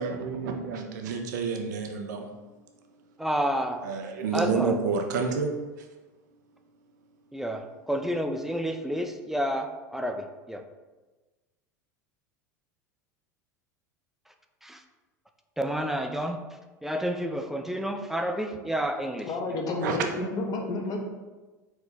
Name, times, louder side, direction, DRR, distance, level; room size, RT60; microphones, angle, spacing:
voice 1, 0.0-2.3 3.8-5.9 19.8-20.0, right 5 dB, 75° right, 3 dB, 0.5 m, -29 dB
voice 2, 3.2-3.8 4.3-4.7 7.3-10.6 14.6-14.8 15.6-16.4 16.8-19.3, equal, 5° right, 5 dB, 0.4 m, -30 dB
voice 3, 19.2-21.0, left 2 dB, 40° left, 1 dB, 0.9 m, -30 dB
4.5 x 2.1 x 4.1 m, 1.2 s
hypercardioid pair, 85°, 10 cm